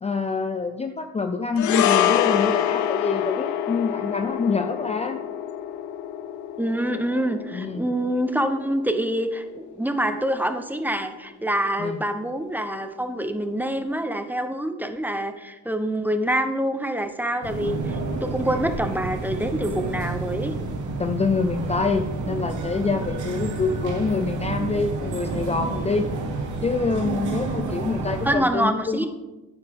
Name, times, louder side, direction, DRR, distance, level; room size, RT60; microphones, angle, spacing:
voice 1, 0.0-5.2 7.5-7.9 11.8-12.0 21.0-26.1 26.6-29.1, left 4 dB, 20° left, 7 dB, 0.5 m, -26 dB
sound 1, 1.6-10.0 10.3-10.5, left 10 dB, 70° left, 0.7 m, -26 dB
voice 2, 6.6-20.5 28.2-29.1, right 1 dB, 5° right, 8 dB, 0.8 m, -26 dB
sound 2, 17.4-28.3, right 3 dB, 70° right, 1.7 m, -29 dB
9.0 x 8.9 x 3.6 m, 1.1 s
cardioid pair, 90°, 30 cm